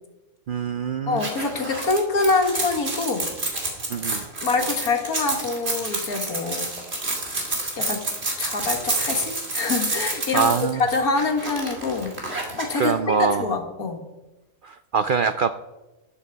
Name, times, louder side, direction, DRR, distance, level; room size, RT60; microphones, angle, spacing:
voice 1, 0.5-1.2 3.9-4.3 10.3-10.8 12.8-13.5 14.6-15.5, right 6 dB, 75° right, 11 dB, 0.4 m, -24 dB
voice 2, 1.1-3.3 4.4-6.8 7.8-8.0 8.4-12.2 12.6-14.0, left 3 dB, 90° left, 4 dB, 2.1 m, -25 dB
sound 1, 1.2-12.9, right 2 dB, 45° right, 2.6 m, -29 dB
12.0 x 11.5 x 4.6 m, 1.1 s
omnidirectional pair, 1.5 m